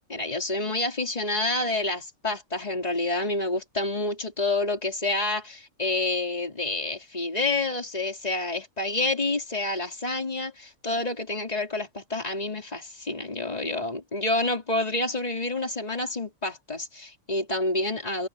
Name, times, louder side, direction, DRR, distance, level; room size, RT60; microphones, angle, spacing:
voice 1, 0.1-18.3, left 2 dB, 25° left, 3.9 m, -28 dB
omnidirectional pair, 1.5 m